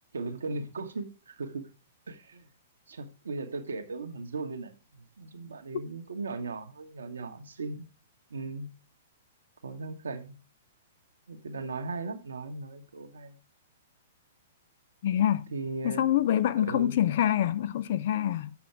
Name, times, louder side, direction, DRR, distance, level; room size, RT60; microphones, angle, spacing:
voice 1, 0.1-1.7 2.1-2.5 2.9-4.7 5.2-7.9 8.3-8.7 9.6-10.4 11.3-13.4 15.5-16.1 16.7-16.9, right 3 dB, 70° right, 1.2 m, -37 dB
voice 2, 15.0-15.5 15.8-18.5, left 11 dB, 55° left, 0.6 m, -26 dB
7.0 x 6.2 x 4.5 m
figure-of-eight pair, 110°, 0 cm